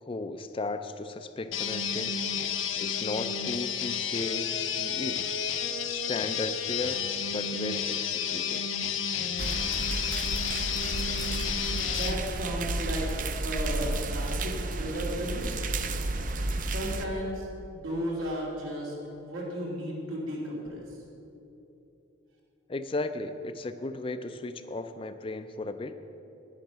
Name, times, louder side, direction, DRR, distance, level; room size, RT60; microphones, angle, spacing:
voice 1, 0.0-2.2 2.8-5.3 5.9-8.7 22.7-26.0, left 2 dB, 25° left, 10 dB, 0.4 m, -35 dB
sound 1, 1.5-12.2, left 7 dB, 75° left, 0.7 m, -31 dB
sound 2, 9.4-17.1, right 2 dB, 40° right, 0.5 m, -32 dB
voice 2, 11.9-13.1 13.4-15.7 16.6-17.5 17.7-20.8, equal, 85° right, -4 dB, 2.9 m, -34 dB
10.0 x 9.5 x 6.0 m, 2.9 s
head